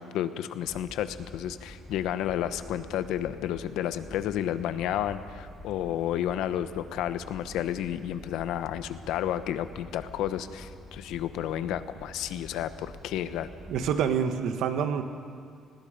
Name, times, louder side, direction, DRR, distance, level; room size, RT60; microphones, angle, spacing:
voice 1, 0.0-13.5, left 11 dB, 80° left, 12 dB, 1.0 m, -31 dB
sound 1, 0.6-14.0, left 1 dB, ahead, 2.2 m, -47 dB
voice 2, 13.7-15.0, right 7 dB, 65° right, 8 dB, 1.5 m, -27 dB
30.0 x 20.0 x 5.2 m, 2.2 s
cardioid pair, 165°, 0 cm